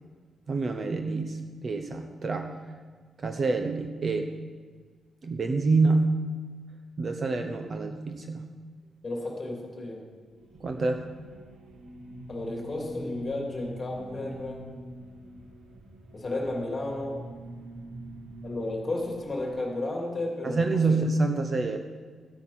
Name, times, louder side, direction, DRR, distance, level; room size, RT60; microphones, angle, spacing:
voice 1, 0.5-2.6 3.2-4.3 5.2-6.1 7.0-8.5 10.6-11.0 20.4-21.8, right 3 dB, 35° right, 6 dB, 0.8 m, -27 dB
voice 2, 9.0-10.0 12.3-14.6 16.1-17.2 18.4-21.0, left 2 dB, 25° left, -1 dB, 2.9 m, -33 dB
sound 1, 10.3-19.5, right 1 dB, 90° right, 1.7 m, -44 dB
15.0 x 8.7 x 5.9 m, 1.5 s
wide cardioid pair, 160°, 0 cm